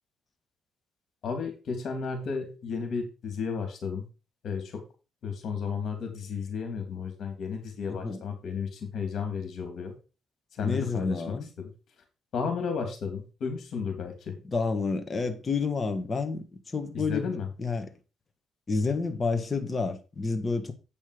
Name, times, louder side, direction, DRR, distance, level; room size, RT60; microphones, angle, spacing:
voice 1, 1.2-4.0 4.4-4.8 5.2-9.9 10.5-11.7 12.3-14.3 16.9-17.5, left 5 dB, 65° left, 3.1 m, -33 dB
voice 2, 7.9-8.2 10.6-11.5 14.4-17.3 17.6-17.9 18.7-20.7, left 4 dB, 30° left, 1.6 m, -29 dB
8.9 x 5.4 x 5.1 m
cardioid pair, 90°, 0 cm